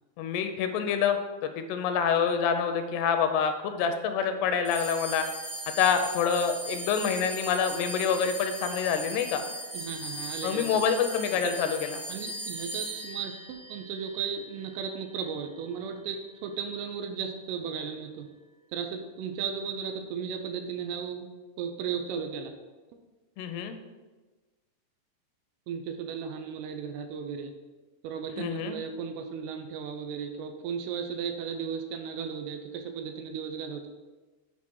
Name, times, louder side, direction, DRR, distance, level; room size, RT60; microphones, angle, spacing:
voice 1, 0.2-5.3 5.8-9.4 10.4-12.0 23.4-23.7 28.4-28.8, left 7 dB, 85° left, 7 dB, 2.6 m, -27 dB
sound 1, 4.6-15.3, right 1 dB, 55° right, 1.2 m, -39 dB
voice 2, 9.7-10.7 12.1-18.3 18.7-21.3 21.6-22.5 25.7-27.5 28.0-33.9, right 6 dB, 80° right, 6 dB, 2.4 m, -35 dB
8.2 x 2.8 x 6.1 m, 1.2 s
omnidirectional pair, 4.8 m